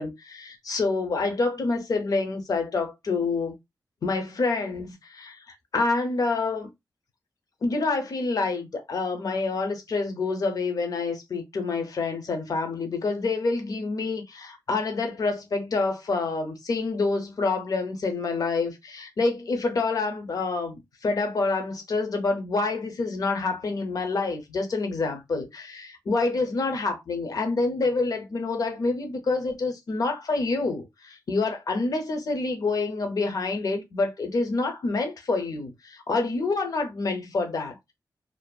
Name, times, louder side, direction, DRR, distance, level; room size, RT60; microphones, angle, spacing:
voice 1, 0.0-3.6 4.0-5.4 5.7-6.7 7.6-37.9, left 3 dB, 55° left, 0.6 m, -27 dB
2.5 x 2.4 x 2.2 m
wide cardioid pair, 180°, 7 cm